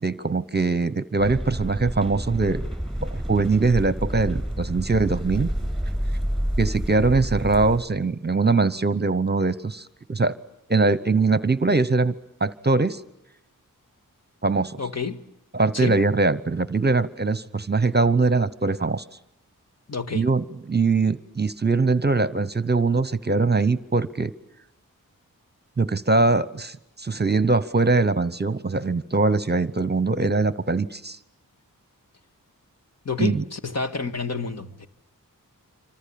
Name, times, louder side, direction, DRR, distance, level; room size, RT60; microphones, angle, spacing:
voice 1, 0.0-2.6 3.0-5.5 6.6-10.4 10.7-12.1 12.4-13.0 14.4-14.8 15.5-19.0 20.1-24.3 25.8-31.2 33.2-33.4, right 3 dB, 30° right, 1.0 m, -22 dB
sound 1, 1.2-7.8, equal, ahead, 5.7 m, -29 dB
voice 2, 14.8-15.2 15.7-16.0 19.9-20.3 33.0-34.9, left 5 dB, 50° left, 2.0 m, -29 dB
27.0 x 25.0 x 8.6 m
wide cardioid pair, 85°, 34 cm